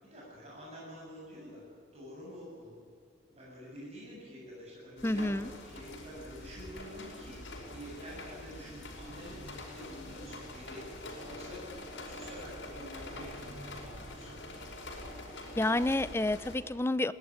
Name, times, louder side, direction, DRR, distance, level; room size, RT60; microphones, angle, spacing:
voice 1, 0.0-1.6 1.9-2.8 3.3-7.4 7.7-10.8 11.2-14.3, equal, 35° right, -5 dB, 8.0 m, -48 dB
sound 1, 5.0-16.6, left 1 dB, 75° left, 5.2 m, -45 dB
voice 2, 5.0-5.5 15.6-17.1, left 2 dB, 15° left, 15 dB, 0.5 m, -29 dB
22.0 x 18.5 x 9.8 m, 2.1 s
head